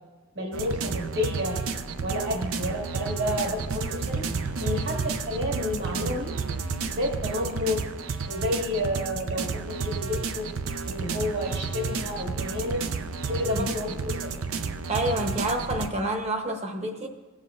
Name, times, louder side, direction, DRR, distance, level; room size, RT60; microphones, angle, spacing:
voice 1, 0.3-1.6 2.0-4.2 4.6-6.3 6.9-7.8 8.3-10.5 10.8-12.8 13.3-14.3, left 1 dB, 60° right, -1 dB, 1.7 m, -30 dB
sound 1, 0.5-15.9, right 4 dB, 90° right, 0.5 m, -31 dB
voice 2, 14.9-17.1, right 1 dB, 30° right, 4 dB, 0.9 m, -28 dB
17.0 x 7.3 x 2.5 m, 1.2 s
head